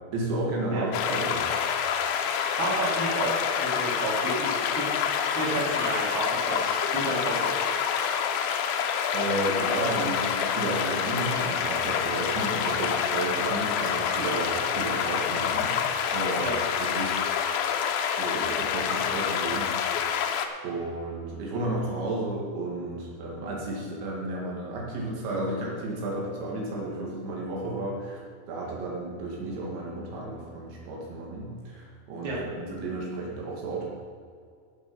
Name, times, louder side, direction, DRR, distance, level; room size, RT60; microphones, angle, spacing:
voice 1, 0.1-1.4 9.1-15.7 16.1-16.5 16.8-17.2 18.2-20.0 20.6-28.2 28.5-33.9, right 2 dB, 85° right, -3 dB, 4.5 m, -32 dB
sound 1, 0.9-20.5, left 8 dB, 80° left, 2.2 m, -27 dB
voice 2, 2.2-4.9 5.3-7.6 16.4-16.5 32.2-32.4, right 2 dB, 30° right, -6 dB, 3.2 m, -31 dB
14.5 x 7.2 x 5.5 m, 2.2 s
omnidirectional pair, 5.1 m